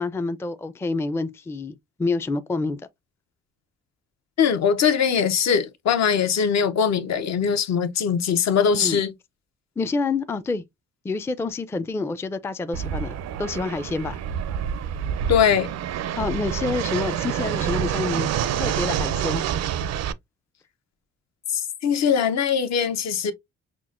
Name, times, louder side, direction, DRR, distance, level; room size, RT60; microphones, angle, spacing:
voice 1, 0.0-2.8 8.7-9.0 9.8-10.6 11.0-14.2 16.2-18.3 18.6-19.4, left 3 dB, 10° left, 0.4 m, -28 dB
voice 2, 4.4-9.1 15.3-15.7 21.5-23.3, left 7 dB, 60° left, 0.8 m, -21 dB
Fixed-wing aircraft airplane, 12.7-20.1, right 9 dB, 60° right, 0.5 m, -27 dB
5.9 x 2.1 x 2.4 m
cardioid pair, 90°, 30 cm